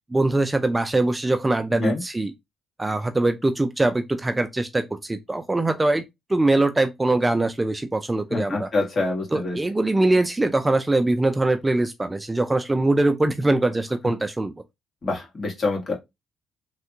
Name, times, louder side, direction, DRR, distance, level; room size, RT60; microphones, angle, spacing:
voice 1, 0.1-2.3 2.8-6.0 6.3-8.7 9.3-14.5, right 2 dB, 15° right, 0.3 m, -22 dB
voice 2, 8.3-9.6 15.0-15.9, left 3 dB, 40° left, 2.0 m, -26 dB
3.3 x 2.5 x 2.9 m
cardioid pair, 90°, 0 cm